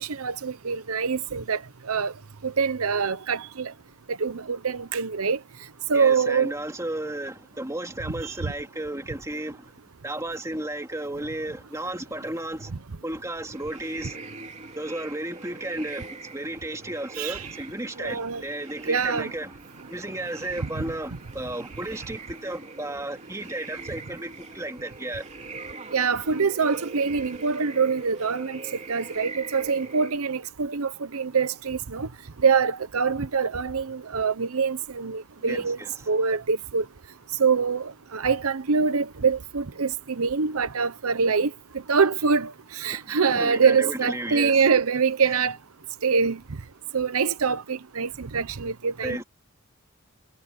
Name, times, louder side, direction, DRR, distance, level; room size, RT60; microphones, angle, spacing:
voice 1, 0.0-1.6 1.9-2.1 2.4-3.7 4.2-5.4 5.9-6.5 8.2-8.5 17.2-17.5 18.0-18.4 18.9-19.3 20.8-20.9 25.9-28.6 28.9-32.1 32.4-35.8 36.1-36.9 37.4-41.5 41.9-45.6 46.0-46.4 46.9-49.2, right 5 dB, 75° right, 0.8 m, -24 dB
voice 2, 5.9-9.7 10.0-12.7 13.0-14.3 14.7-19.6 19.9-25.3 35.4-36.1 42.9-44.6 45.2-45.4 49.0-49.2, right 1 dB, 15° right, 2.6 m, -34 dB
sound 1, 13.5-30.1, right 3 dB, 30° right, 3.0 m, -42 dB
head